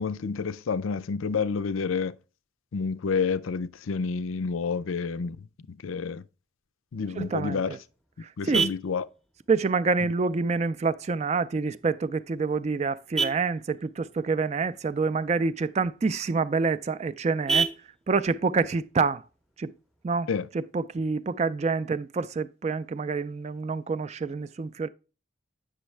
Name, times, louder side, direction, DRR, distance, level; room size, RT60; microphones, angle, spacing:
voice 1, 0.0-2.1 2.7-5.4 5.7-6.2 6.9-7.7 8.4-9.0 20.3-20.5, left 5 dB, 85° left, 0.5 m, -29 dB
voice 2, 7.2-7.8 8.2-8.7 9.5-17.7 18.1-19.2 19.6-19.7 20.0-20.3 20.5-24.9, right 4 dB, 35° right, 0.3 m, -27 dB
Vehicle horn car horn honking, 7.3-20.3, right 4 dB, ahead, 0.6 m, -36 dB
8.1 x 6.2 x 3.2 m
head